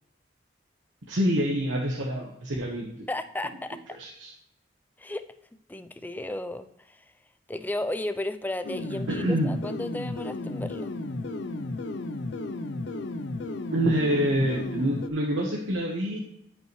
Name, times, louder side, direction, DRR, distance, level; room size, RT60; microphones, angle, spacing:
voice 1, 1.1-3.1 3.9-4.3 9.1-9.5 13.7-16.2, equal, 85° right, -1 dB, 1.1 m, -26 dB
voice 2, 3.1-4.0 5.0-5.2 5.7-7.0 7.5-10.9, left 1 dB, 10° left, 9 dB, 0.4 m, -34 dB
sound 1, 8.6-15.1, left 2 dB, 70° left, 0.5 m, -34 dB
13.5 x 5.5 x 3.1 m, 0.79 s
head